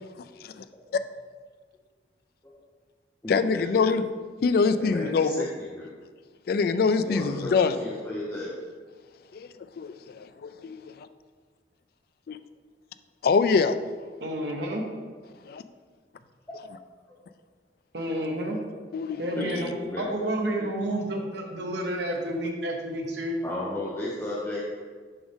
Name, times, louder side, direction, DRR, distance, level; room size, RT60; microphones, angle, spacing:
voice 1, 0.1-0.6 0.9-1.0 3.3-4.0 4.4-5.5 6.5-7.8 9.3-11.1 12.3-12.4 13.2-14.2 15.4-15.6 18.9-19.5, left 4 dB, 55° left, 11 dB, 0.3 m, -25 dB
voice 2, 3.2-3.7 4.8-5.3 5.7-5.9 7.0-8.5 16.5-16.6 17.1-17.2 19.1-20.1 20.6-20.7 23.4-24.6, left 1 dB, 15° left, -7 dB, 0.8 m, -34 dB
voice 3, 14.2-14.8 17.9-18.6 19.2-23.3, right 1 dB, 70° right, 1 dB, 1.0 m, -30 dB
7.0 x 5.1 x 3.6 m, 1.5 s
head